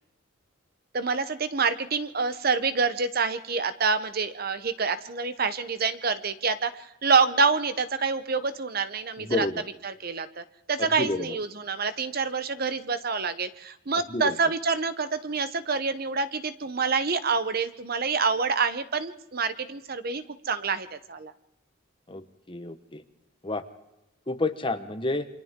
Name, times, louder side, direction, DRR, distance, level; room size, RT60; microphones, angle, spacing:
voice 1, 0.9-9.5 9.8-21.3, right 4 dB, 45° right, 12 dB, 0.8 m, -27 dB
voice 2, 9.2-9.6 10.8-11.3 14.1-14.4 22.1-22.2 22.5-23.0 23.4-23.6 24.3-25.3, left 2 dB, 25° left, 9 dB, 1.0 m, -29 dB
28.5 x 24.5 x 3.7 m, 0.93 s
head